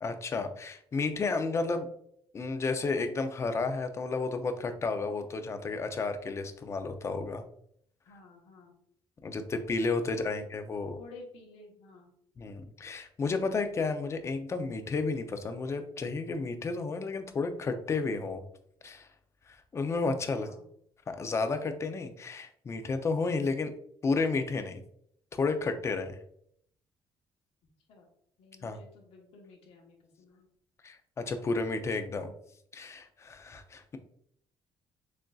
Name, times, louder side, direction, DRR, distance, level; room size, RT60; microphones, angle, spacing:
voice 1, 0.0-1.9 2.3-7.4 9.2-11.0 12.4-18.4 18.8-19.1 19.5-20.5 21.1-23.7 24.0-24.8 25.3-26.2 28.6-28.8 30.8-32.3 32.7-34.0, left 4 dB, 30° left, 7 dB, 0.5 m, -32 dB
voice 2, 8.0-8.8 10.1-10.5 11.0-12.1 20.3-20.6 27.9-28.1 28.4-30.5, left 2 dB, 80° left, 0 dB, 1.1 m, -52 dB
6.2 x 2.6 x 2.3 m, 0.67 s
cardioid pair, 140°, 10 cm